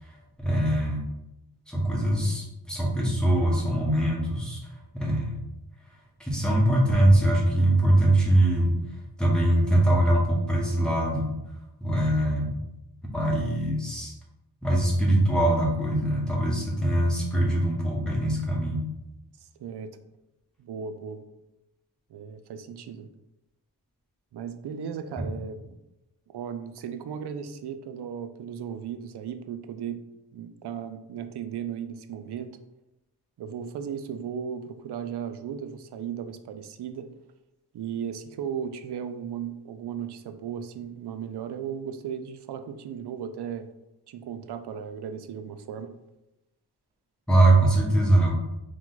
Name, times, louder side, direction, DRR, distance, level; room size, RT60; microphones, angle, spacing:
voice 1, 0.4-1.0 1.7-4.6 4.9-5.4 6.2-8.7 9.2-11.3 11.8-12.6 13.1-14.1 14.6-18.8 25.2-25.3 47.3-48.4, right 1 dB, ahead, -3 dB, 1.1 m, -22 dB
voice 2, 19.4-19.9 20.6-21.2 22.1-23.1 24.3-25.8 26.3-30.0 30.3-32.5 33.4-37.1 37.7-43.7 44.1-45.9, right 7 dB, 70° right, 9 dB, 0.5 m, -36 dB
4.7 x 2.3 x 3.9 m, 0.93 s
wide cardioid pair, 100°, 41 cm